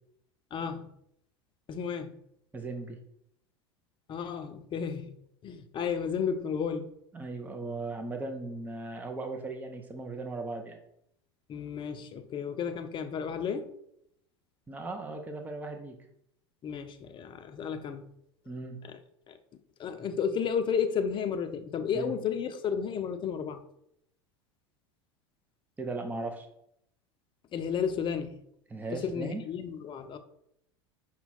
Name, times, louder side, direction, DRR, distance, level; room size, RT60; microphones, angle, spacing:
voice 1, 0.5-0.9 1.7-2.1 4.1-5.1 5.4-6.9 11.5-13.7 16.6-18.1 18.8-19.0 19.3-19.4 19.8-23.6 27.5-28.4 28.9-30.2, left 7 dB, 35° left, 8 dB, 0.6 m, -32 dB
voice 2, 2.5-3.0 7.1-10.8 14.7-16.0 18.5-18.8 21.9-22.1 25.8-26.5 28.7-29.4, right 3 dB, 10° right, 4 dB, 0.6 m, -37 dB
5.6 x 2.2 x 4.1 m, 0.73 s
hypercardioid pair, 80°, 15 cm